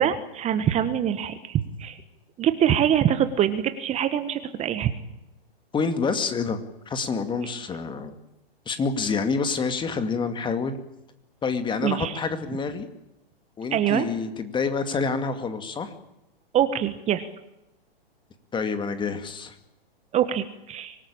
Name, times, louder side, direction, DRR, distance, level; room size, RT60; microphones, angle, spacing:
voice 1, 0.0-2.0 2.4-4.9 11.8-12.2 13.7-14.1 16.5-17.3 20.1-21.0, right 10 dB, 20° right, 10 dB, 1.4 m, -24 dB
voice 2, 5.7-6.6 6.9-8.2 8.7-10.8 11.4-12.9 13.6-15.9 18.5-19.6, left 5 dB, 15° left, 9 dB, 2.3 m, -27 dB
25.0 x 19.5 x 8.7 m, 0.89 s
hypercardioid pair, 125°, 30 cm